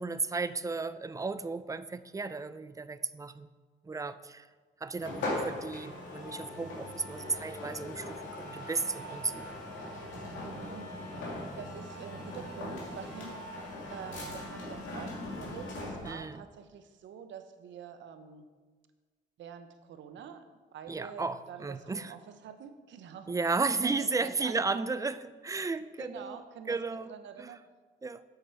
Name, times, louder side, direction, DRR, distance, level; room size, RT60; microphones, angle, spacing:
voice 1, 0.0-3.5 3.8-4.5 4.8-9.5 16.0-16.4 20.9-22.1 23.3-26.4 26.7-27.1 27.4-27.5 28.0-28.2, right 4 dB, 15° right, 13 dB, 0.4 m, -34 dB
sound 1, 5.0-16.2, left 1 dB, 75° left, 2.3 m, -40 dB
voice 2, 10.4-10.9 11.6-13.4 13.9-18.5 19.4-23.4 23.8-24.7 26.0-27.6, right 7 dB, 70° right, 9 dB, 0.8 m, -46 dB
8.2 x 6.6 x 4.5 m, 1.4 s
cardioid pair, 90°, 20 cm